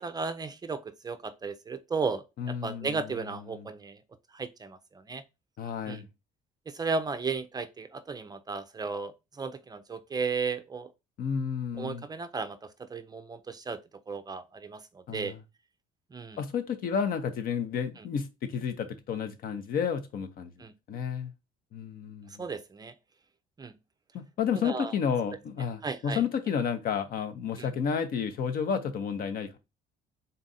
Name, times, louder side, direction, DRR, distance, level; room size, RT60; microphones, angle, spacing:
voice 1, 0.0-4.0 4.3-5.2 5.9-6.0 6.7-10.9 11.8-13.8 14.1-15.3 16.1-16.4 20.6-20.7 22.4-22.9 23.6-23.7 24.6-24.9 25.8-26.2 27.6-27.7, right 4 dB, 25° right, 0.4 m, -35 dB
voice 2, 2.4-3.7 5.6-6.1 11.2-12.0 15.1-15.4 16.4-21.3 21.7-22.5 24.1-29.6, left 7 dB, 60° left, 0.8 m, -31 dB
3.9 x 2.5 x 4.0 m
cardioid pair, 110°, 17 cm